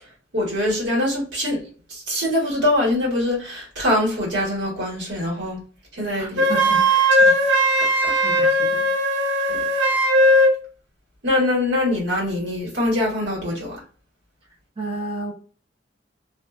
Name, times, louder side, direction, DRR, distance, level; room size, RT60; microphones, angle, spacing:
voice 1, 0.3-1.6 1.9-5.6 5.9-6.4 8.0-8.1 9.5-9.6 11.2-13.8, left 1 dB, 70° right, 1.4 m, -23 dB
voice 2, 6.2-6.9 8.1-8.9 14.8-15.3, right 2 dB, 30° right, 0.7 m, -32 dB
Wind instrument woodwind instrument, 6.4-10.6, equal, 90° right, 0.5 m, -18 dB
2.5 x 2.2 x 2.3 m
head